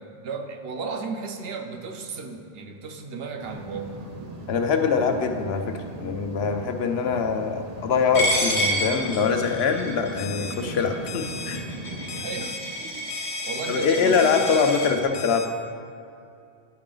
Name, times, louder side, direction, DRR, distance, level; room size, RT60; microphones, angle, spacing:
voice 1, 0.0-4.0 12.2-14.6, right 4 dB, 75° right, 4 dB, 0.9 m, -35 dB
sound 1, 3.4-12.2, right 2 dB, 45° right, 0.6 m, -38 dB
voice 2, 4.5-11.7 13.7-15.5, left 5 dB, 85° left, 5 dB, 0.9 m, -23 dB
Coin (dropping), 8.1-14.9, equal, 40° left, 1.8 m, -29 dB
Alarm, 10.2-10.5 11.1-11.6 12.1-12.6 13.1-13.6 14.2-14.7 15.1-15.5, left 5 dB, 60° left, 0.6 m, -36 dB
10.5 x 4.8 x 3.8 m, 2.5 s
omnidirectional pair, 1.0 m